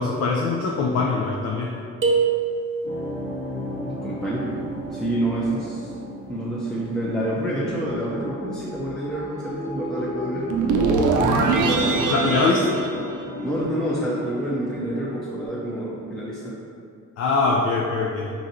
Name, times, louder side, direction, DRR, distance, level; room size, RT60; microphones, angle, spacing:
voice 1, 0.0-1.8 12.1-12.8 17.2-18.3, left 3 dB, 55° left, 0 dB, 0.5 m, -22 dB
sound 1, 2.0-3.1, right 5 dB, 40° right, 0.8 m, -23 dB
sound 2, 2.8-15.5, equal, 40° left, 0.9 m, -34 dB
voice 2, 3.8-4.6 4.9-5.9 6.3-10.5 13.4-16.6, right 1 dB, ahead, -7 dB, 0.5 m, -28 dB
sound 3, 10.5-13.8, right 3 dB, 75° right, 0.5 m, -22 dB
3.8 x 2.6 x 4.1 m, 2.3 s
cardioid pair, 90°, 30 cm